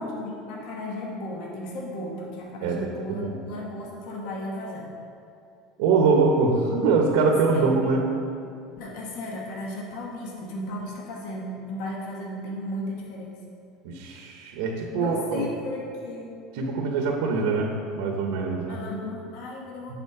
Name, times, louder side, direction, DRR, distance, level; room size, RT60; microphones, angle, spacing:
voice 1, 0.0-4.9 7.3-7.8 8.8-13.6 15.0-16.4 18.7-20.0, left 1 dB, 60° left, -2 dB, 1.3 m, -35 dB
voice 2, 2.6-3.5 5.8-8.0 13.8-15.5 16.5-18.8, right 4 dB, 75° right, 2 dB, 0.9 m, -23 dB
8.1 x 4.3 x 6.8 m, 2.5 s
cardioid pair, 165°, 0 cm